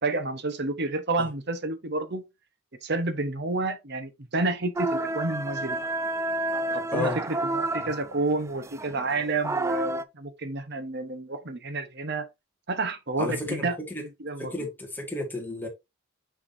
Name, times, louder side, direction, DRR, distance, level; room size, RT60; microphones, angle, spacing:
voice 1, 0.0-2.2 2.8-5.8 6.7-12.3 12.7-13.8 14.2-14.5, right 2 dB, 55° right, 1.1 m, -30 dB
sound 1, 4.8-10.0, right 2 dB, 15° right, 0.3 m, -30 dB
voice 2, 13.2-14.0 14.5-15.7, left 2 dB, 10° left, 1.9 m, -32 dB
6.2 x 6.1 x 2.7 m
head